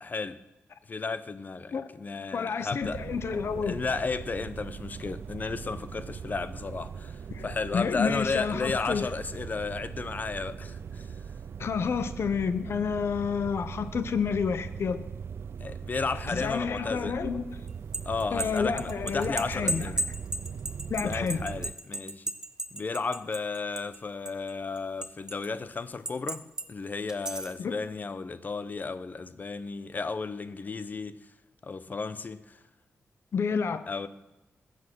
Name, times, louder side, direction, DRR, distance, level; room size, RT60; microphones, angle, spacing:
voice 1, 0.0-0.4 0.9-3.0 3.7-11.1 15.6-17.2 18.0-20.0 21.0-22.3 22.7-26.4 26.7-31.1 31.6-32.6 33.9-34.1, left 4 dB, 40° left, 0.7 m, -33 dB
voice 2, 2.3-3.8 7.3-7.5 7.7-9.1 11.6-15.0 16.3-17.6 18.3-19.9 20.9-21.4 27.6-27.8 33.3-33.8, left 6 dB, 60° left, 0.9 m, -29 dB
sound 1, 2.8-21.7, right 7 dB, 55° right, 0.4 m, -40 dB
sound 2, 17.7-24.0 24.3-25.5 26.1-26.7 27.1-27.6, right 1 dB, 15° right, 0.8 m, -34 dB
21.0 x 7.4 x 6.2 m
wide cardioid pair, 110°, 5 cm